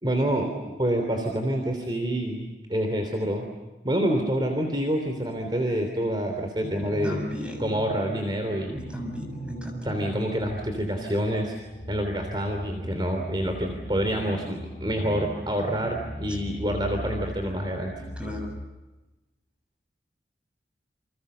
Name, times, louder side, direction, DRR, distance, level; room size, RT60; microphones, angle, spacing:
voice 1, 0.0-0.5 0.8-3.5 3.8-7.2 7.6-8.8 9.8-11.6 11.9-17.9, equal, 25° right, 3 dB, 3.3 m, -27 dB
sound 1, 6.6-18.7, equal, 35° left, 6.1 m, -39 dB
voice 2, 6.8-7.8 8.7-10.0 18.2-18.5, equal, 5° right, 3 dB, 7.1 m, -35 dB
29.5 x 27.5 x 6.9 m, 1.1 s
head